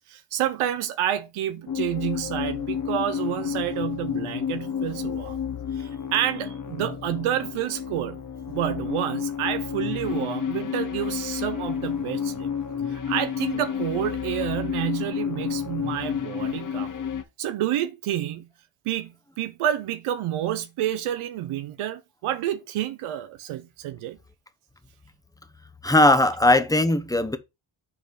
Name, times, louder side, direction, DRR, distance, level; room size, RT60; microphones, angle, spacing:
voice 1, 0.1-5.4 5.8-8.2 8.5-12.5 12.9-16.9 17.4-18.5 18.9-24.2, right 11 dB, 85° right, 0.7 m, -29 dB
sound 1, 1.7-17.2, left 7 dB, 40° left, 1.0 m, -30 dB
voice 2, 25.8-27.4, left 1 dB, 5° left, 1.0 m, -19 dB
6.0 x 3.9 x 4.7 m
cardioid pair, 60°, 49 cm